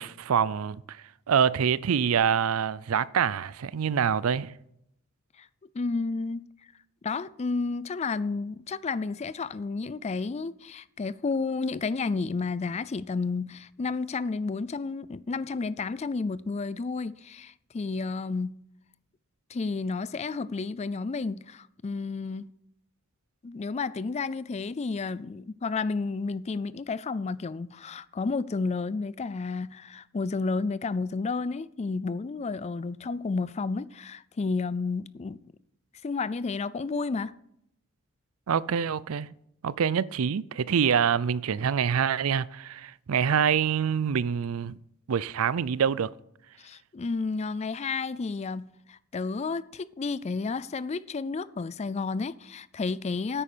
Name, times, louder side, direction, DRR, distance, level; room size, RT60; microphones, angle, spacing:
voice 1, 0.0-4.5 38.5-39.3 39.6-44.8 45.1-46.1, right 7 dB, 70° right, 0.4 m, -26 dB
voice 2, 5.7-6.4 7.0-18.6 19.5-22.5 23.4-35.4 36.0-37.4 46.6-53.4, left 4 dB, 30° left, 0.4 m, -31 dB
9.7 x 9.0 x 6.7 m
head